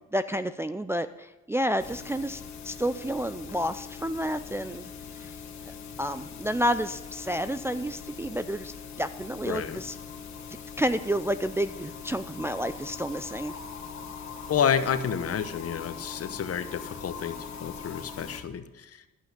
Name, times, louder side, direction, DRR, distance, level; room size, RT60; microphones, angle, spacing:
voice 1, 0.1-4.9 5.2-5.3 6.0-8.7 9.0-9.9 10.8-13.5, equal, 10° right, 9 dB, 0.4 m, -30 dB
sound 1, 1.8-18.4, left 6 dB, 65° left, 1.7 m, -42 dB
voice 2, 9.4-9.8 14.5-19.1, left 8 dB, 50° left, 11 dB, 1.0 m, -30 dB
11.5 x 8.3 x 6.7 m, 1.1 s
cardioid pair, 90°, 30 cm